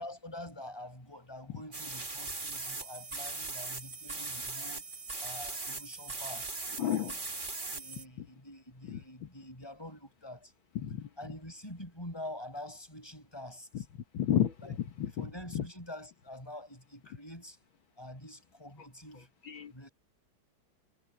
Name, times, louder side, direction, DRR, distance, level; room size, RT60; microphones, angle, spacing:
voice 1, 0.0-4.9 5.2-6.5 7.7-10.5 11.2-13.9 14.6-17.6 18.0-19.3 19.7-19.9, left 1 dB, 10° left, 7.0 m, -46 dB
sound 1, 1.7-8.1, right 3 dB, 25° right, 2.1 m, -39 dB
voice 2, 6.8-7.2 8.2-8.3 8.9-9.3 10.8-11.1 13.7-13.8 14.1-15.3 15.6-15.7 18.8-18.9 19.4-19.7, left 10 dB, 70° left, 2.1 m, -32 dB
omnidirectional pair, 2.3 m